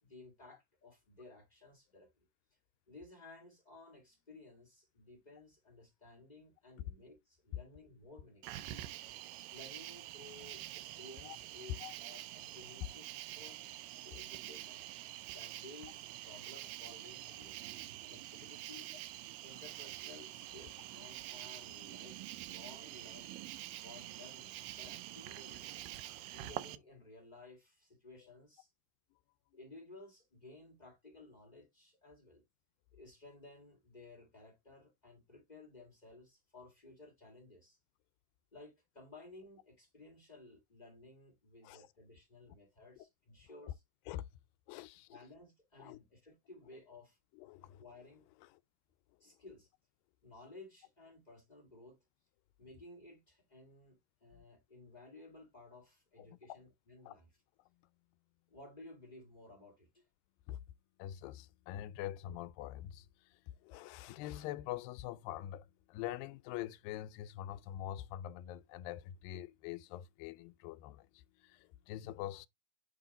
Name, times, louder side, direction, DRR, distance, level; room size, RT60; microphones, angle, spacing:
voice 1, 0.0-2.3 2.9-8.6 9.5-13.1 13.4-14.8 15.3-18.9 19.4-23.3 23.8-26.0 26.3-28.7 29.5-32.4 32.9-37.8 38.5-43.8 45.1-47.2 47.8-48.2 49.2-49.7 50.2-52.0 52.6-57.3 58.5-60.0, left 2 dB, 30° left, 0.8 m, -56 dB
Cricket, 8.4-26.8, right 15 dB, 80° right, 2.2 m, -47 dB
voice 2, 44.7-45.2 45.8-46.0 47.4-47.8 48.4-48.6 54.3-54.4 56.2-56.6 57.1-57.2 60.5-60.6 61.0-72.5, left 13 dB, 85° left, 2.2 m, -45 dB
8.3 x 3.0 x 4.0 m
omnidirectional pair, 4.1 m